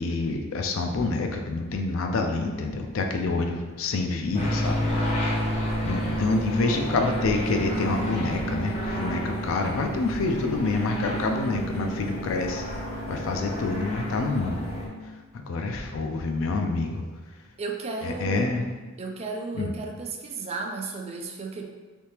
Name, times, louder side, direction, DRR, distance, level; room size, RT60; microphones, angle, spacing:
voice 1, 0.0-4.9 5.8-12.7 13.1-14.7 15.3-17.0 18.0-18.6 19.5-19.7, left 3 dB, 70° left, 4 dB, 0.4 m, -27 dB
sound 1, 4.3-14.9, equal, 35° left, 0.6 m, -30 dB
voice 2, 17.6-18.5 19.0-21.6, right 3 dB, 30° right, 1 dB, 0.3 m, -34 dB
3.5 x 2.7 x 2.8 m, 1.3 s
head